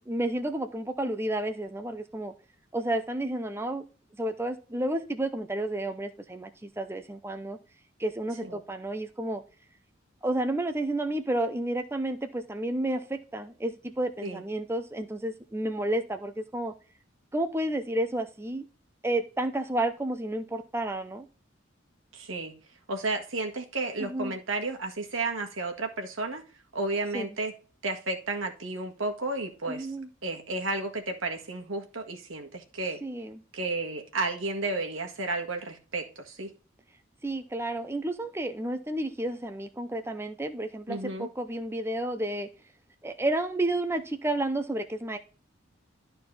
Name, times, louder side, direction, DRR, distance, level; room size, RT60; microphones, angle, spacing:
voice 1, 0.1-2.3 2.7-3.8 4.2-7.6 8.0-9.4 10.2-16.7 17.3-18.7 19.0-21.3 24.0-24.3 27.1-27.3 29.7-30.1 33.0-33.4 37.2-42.5 43.0-45.2, right 1 dB, 10° right, 7 dB, 0.6 m, -31 dB
voice 2, 22.1-22.5 22.9-26.4 26.7-27.5 27.8-29.9 30.2-33.0 33.5-36.5 40.9-41.3, right 3 dB, 80° right, 4 dB, 1.7 m, -32 dB
12.0 x 4.4 x 4.2 m, 0.37 s
head